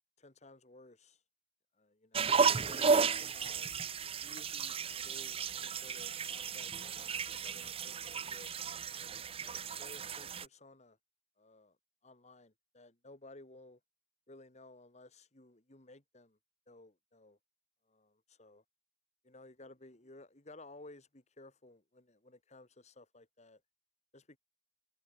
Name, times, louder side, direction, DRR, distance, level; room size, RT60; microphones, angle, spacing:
voice 1, 0.2-1.2 1.7-3.7 4.2-6.7 7.2-8.5 9.0-11.0 11.4-11.8 12.0-13.8 14.3-16.4 16.7-17.4 17.9-18.6 19.2-23.6 24.1-24.4, left 2 dB, 40° left, 2.5 m, -56 dB
sound 1, 2.1-10.4, right 5 dB, 35° right, 0.7 m, -33 dB
head